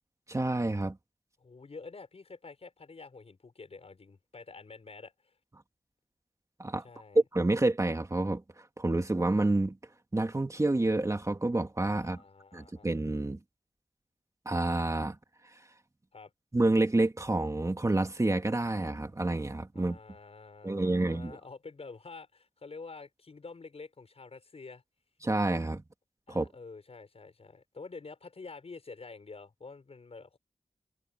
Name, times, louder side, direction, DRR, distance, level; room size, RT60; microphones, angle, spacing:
voice 1, 0.3-1.0 6.6-6.8 7.1-9.8 10.1-12.2 12.5-13.4 14.5-15.2 15.5-15.6 16.5-20.0 20.6-21.4 25.2-25.8 26.3-26.5, right 2 dB, 25° right, 2.3 m, -28 dB
voice 2, 1.4-5.3 6.8-7.2 12.0-12.9 16.1-16.3 19.7-24.8 26.3-30.4, left 4 dB, 60° left, 6.2 m, -48 dB
wide cardioid pair, 90°, 12 cm